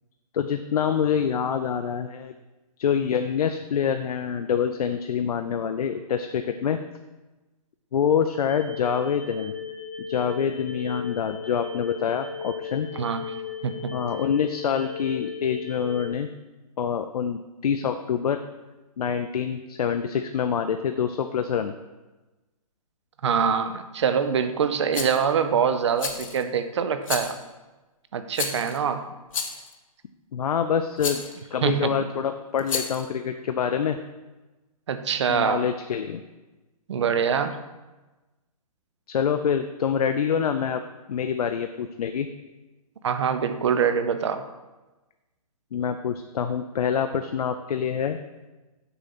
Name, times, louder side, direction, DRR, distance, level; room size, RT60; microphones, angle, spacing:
voice 1, 0.3-2.3 2.8-6.8 7.9-9.5 10.1-12.9 13.9-16.3 16.8-18.4 19.0-21.7 30.3-31.2 31.5-34.0 35.3-36.2 39.1-40.8 41.1-42.3 45.7-48.2, left 7 dB, 75° left, 7 dB, 0.5 m, -26 dB
sound 1, 8.3-16.1, left 6 dB, 10° right, 0.9 m, -36 dB
voice 2, 12.9-13.3 13.6-14.0 23.2-27.4 28.1-29.1 31.6-32.0 34.9-35.7 36.9-37.6 43.0-44.4, right 7 dB, 50° right, 9 dB, 0.6 m, -24 dB
Rattle, 24.9-25.2 26.0-26.4 27.0-27.4 28.3-28.8 29.3-29.7 31.0-31.3 32.6-33.1, left 5 dB, 60° left, 0.9 m, -31 dB
6.8 x 3.8 x 5.9 m, 1.1 s
hypercardioid pair, 170°, 19 cm